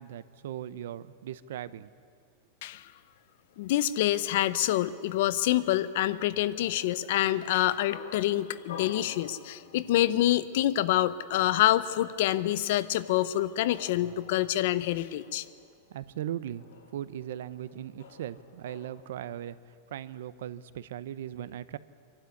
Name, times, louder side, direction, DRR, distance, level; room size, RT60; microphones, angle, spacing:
voice 1, 0.0-1.9 15.9-16.7 16.9-21.8, right 11 dB, 70° right, 16 dB, 0.7 m, -38 dB
sound 1, 3.0-19.3, left 7 dB, 80° left, 2.8 m, -52 dB
voice 2, 3.6-15.4, left 13 dB, 55° left, 16 dB, 0.7 m, -26 dB
25.0 x 12.5 x 9.7 m, 2.2 s
supercardioid pair, 175°, 0 cm